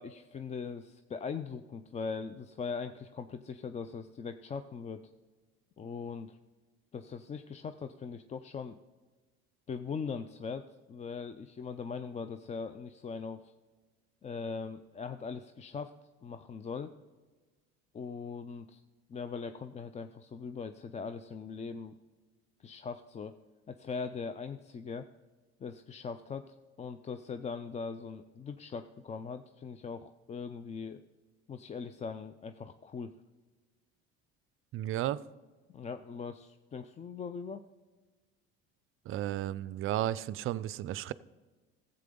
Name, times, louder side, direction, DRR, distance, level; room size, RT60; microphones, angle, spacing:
voice 1, 0.0-5.1 5.8-6.4 6.9-8.8 9.7-13.5 14.2-15.9 16.2-17.0 17.9-18.8 19.1-22.0 22.6-23.3 23.7-25.1 25.6-31.0 31.5-33.1 35.7-37.6, left 5 dB, 25° left, 10 dB, 0.4 m, -40 dB
voice 2, 34.7-35.2 39.1-41.1, right 13 dB, 45° right, 19 dB, 0.4 m, -33 dB
14.0 x 7.8 x 3.8 m, 1.3 s
supercardioid pair, 85°, 30 cm